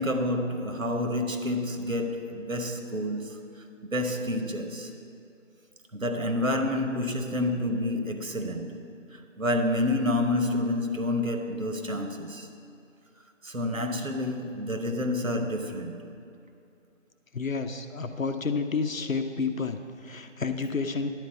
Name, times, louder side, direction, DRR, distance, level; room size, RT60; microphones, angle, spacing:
voice 1, 0.0-3.5 3.9-4.9 5.9-8.8 9.1-12.5 13.4-15.9, left 1 dB, 90° right, 5 dB, 1.1 m, -29 dB
voice 2, 17.3-21.1, left 4 dB, 90° left, 8 dB, 0.8 m, -30 dB
10.5 x 4.6 x 6.8 m, 2.6 s
figure-of-eight pair, 170°, 39 cm